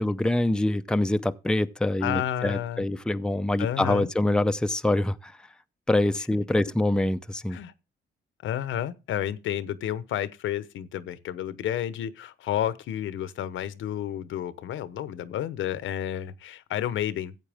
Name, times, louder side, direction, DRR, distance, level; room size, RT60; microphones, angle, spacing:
voice 1, 0.0-5.4 5.9-7.6, left 1 dB, 5° left, 0.6 m, -25 dB
voice 2, 2.0-2.8 3.6-4.1 7.5-7.7 8.4-17.3, left 11 dB, 75° left, 1.0 m, -31 dB
14.5 x 8.4 x 3.5 m
cardioid pair, 90°, 20 cm